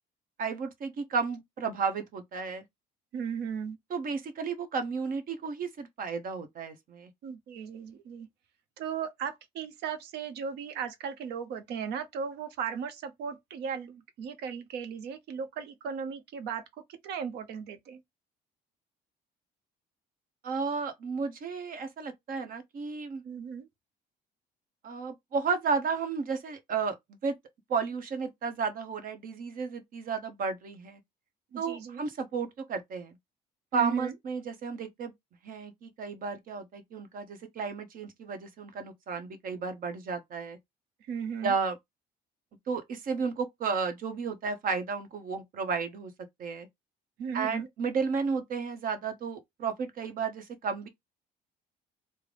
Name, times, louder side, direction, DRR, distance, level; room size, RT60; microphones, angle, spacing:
voice 1, 0.4-2.6 3.9-7.1 20.4-23.2 24.8-27.3 27.7-31.0 31.6-33.2 33.7-35.1 35.4-40.6 41.4-41.8 42.7-46.1 46.4-46.7 47.3-50.9, right 5 dB, 55° right, 1.0 m, -33 dB
voice 2, 3.1-3.8 7.2-8.3 8.8-18.0 23.2-23.7 31.5-32.0 33.7-34.1 41.0-41.5 47.2-47.7, right 7 dB, 80° right, 0.8 m, -36 dB
3.7 x 2.1 x 3.3 m
cardioid pair, 110°, 17 cm